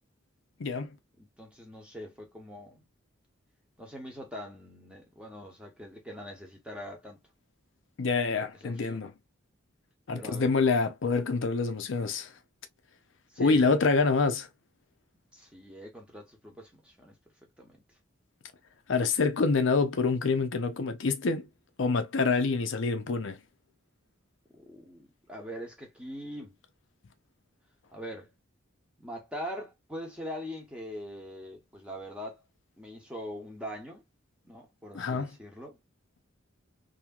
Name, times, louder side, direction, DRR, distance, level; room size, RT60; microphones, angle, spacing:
voice 1, 0.6-0.9 8.0-9.1 10.1-12.3 13.4-14.5 18.9-21.5 21.8-23.4 34.9-35.3, left 4 dB, 65° left, 0.5 m, -26 dB
voice 2, 1.2-2.9 3.8-7.2 8.6-9.0 10.1-10.5 13.3-13.7 15.3-17.2 17.6-17.8 24.5-26.6 27.9-28.3 29.0-32.4 32.8-34.0 34.4-35.8, equal, 5° right, 0.9 m, -42 dB
2.9 x 2.7 x 2.3 m
head